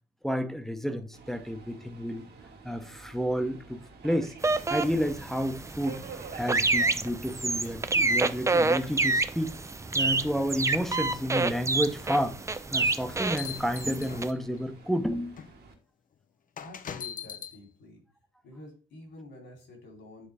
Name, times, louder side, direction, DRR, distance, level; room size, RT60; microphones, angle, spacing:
voice 1, 0.2-2.2 2.6-4.3 4.7-6.0 6.3-9.5 9.9-12.4 12.7-15.4, equal, ahead, 0.8 m, -30 dB
Subway metro underground, 1.1-15.7, right 4 dB, 55° right, 1.8 m, -50 dB
sound 1, 4.4-14.3, right 3 dB, 15° right, 0.4 m, -28 dB
sound 2, 12.8-14.6 15.4-15.5 16.6-17.6, left 9 dB, 45° left, 0.5 m, -40 dB
voice 2, 16.6-18.0 18.4-20.3, left 2 dB, 75° left, 3.1 m, -48 dB
9.0 x 3.9 x 3.4 m
cardioid pair, 90°, 20 cm